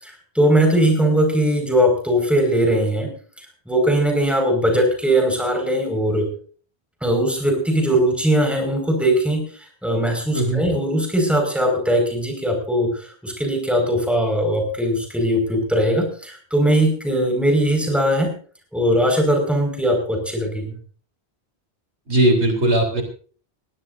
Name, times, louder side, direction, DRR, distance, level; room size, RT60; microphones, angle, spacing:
voice 1, 0.0-3.1 3.7-6.3 7.0-18.3 18.7-20.8, right 1 dB, ahead, 2 dB, 5.2 m, -20 dB
voice 2, 22.1-23.0, right 1 dB, 85° right, 3 dB, 3.6 m, -18 dB
21.5 x 16.5 x 2.7 m, 0.43 s
omnidirectional pair, 1.1 m